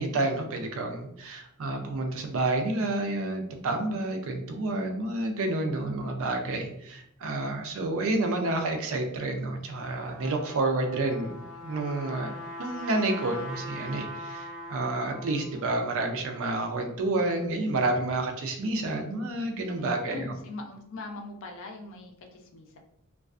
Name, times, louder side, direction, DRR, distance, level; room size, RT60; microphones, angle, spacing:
voice 1, 0.0-12.3 12.6-20.3, right 2 dB, 65° right, 4 dB, 0.4 m, -29 dB
Trumpet, 10.0-15.7, left 1 dB, 20° right, 1.5 m, -41 dB
voice 2, 19.8-22.8, left 3 dB, 60° left, 3 dB, 0.4 m, -41 dB
2.3 x 2.3 x 2.4 m, 0.76 s
head